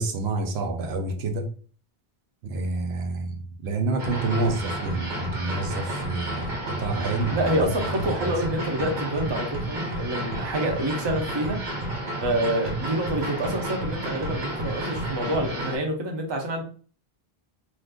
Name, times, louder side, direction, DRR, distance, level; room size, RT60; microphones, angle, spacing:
voice 1, 0.0-1.5 2.4-8.3, right 2 dB, 85° right, 5 dB, 0.9 m, -28 dB
sound 1, 4.0-15.8, right 1 dB, 50° right, 1.1 m, -31 dB
voice 2, 7.3-11.6 12.2-16.6, right 1 dB, 30° right, 2 dB, 0.6 m, -27 dB
2.6 x 2.4 x 3.5 m, 0.42 s
omnidirectional pair, 1.1 m